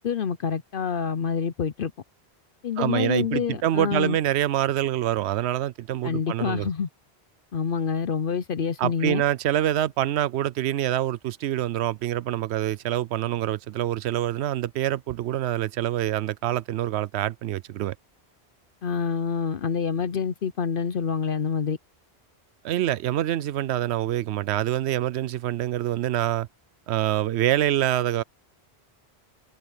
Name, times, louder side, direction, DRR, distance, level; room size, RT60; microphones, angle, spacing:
voice 1, 0.0-1.9 2.6-4.2 6.0-6.9 7.5-9.2 18.8-21.8, left 6 dB, 60° left, 0.8 m, -27 dB
voice 2, 2.8-6.7 8.8-18.0 22.6-26.5 26.9-28.2, right 12 dB, 85° right, 0.8 m, -26 dB
omnidirectional pair, 1.1 m